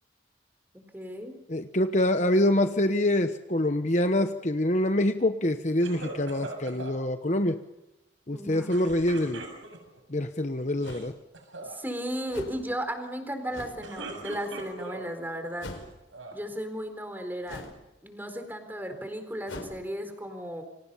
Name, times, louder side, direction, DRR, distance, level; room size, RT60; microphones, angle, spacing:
voice 1, 0.7-1.3 8.3-8.7 11.6-15.7 16.3-17.6 18.0-20.6, equal, 10° right, 7 dB, 4.3 m, -35 dB
voice 2, 1.5-7.6 8.3-9.4 10.1-11.1, left 1 dB, 35° left, 8 dB, 1.1 m, -25 dB
sound 1, 5.8-7.0 8.7-10.0 10.7-11.1 11.3-11.8 13.6-15.1 15.7-16.4, right 3 dB, 90° right, 7.6 m, -41 dB
sound 2, 9.8-9.9 10.8-11.1 12.3-12.7 13.5-13.9 15.6-16.0 17.5-17.9 19.5-19.7, left 2 dB, 90° left, 4.8 m, -41 dB
29.5 x 26.0 x 5.7 m, 0.94 s
head